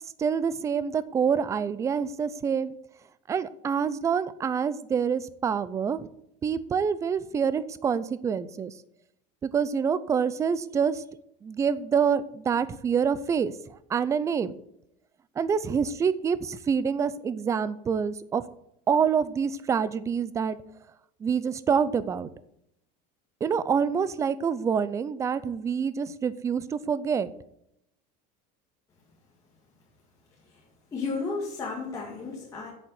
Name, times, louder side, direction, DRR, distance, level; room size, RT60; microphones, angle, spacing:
voice 1, 0.2-2.7 3.3-6.1 6.4-8.7 9.4-11.0 11.4-14.5 15.4-18.4 18.9-20.6 21.2-22.3 23.4-27.3, right 6 dB, 15° right, 15 dB, 0.5 m, -26 dB
voice 2, 30.9-32.7, left 4 dB, 20° left, -4 dB, 2.4 m, -33 dB
8.6 x 7.2 x 8.2 m, 0.76 s
cardioid pair, 160°, 19 cm